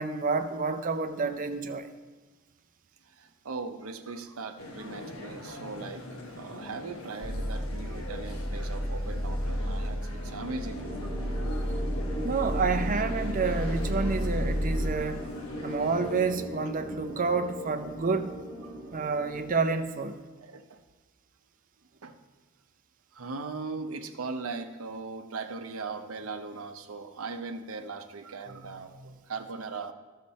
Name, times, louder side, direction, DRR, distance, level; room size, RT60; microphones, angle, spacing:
voice 1, 0.0-1.9 12.2-15.3 15.6-18.4 18.9-20.2 28.5-29.2, right 4 dB, 40° right, 8 dB, 0.6 m, -29 dB
voice 2, 3.1-11.2 11.7-11.8 18.6-18.7 20.4-20.8 22.0-22.2 23.1-29.9, right 4 dB, 75° right, 7 dB, 0.7 m, -39 dB
sound 1, 4.6-16.3, left 1 dB, 85° left, 1.2 m, -43 dB
sound 2, 7.2-14.9, equal, 5° left, 0.3 m, -32 dB
sound 3, 10.7-19.6, equal, 20° left, 3.3 m, -39 dB
12.5 x 6.6 x 4.2 m, 1.3 s
head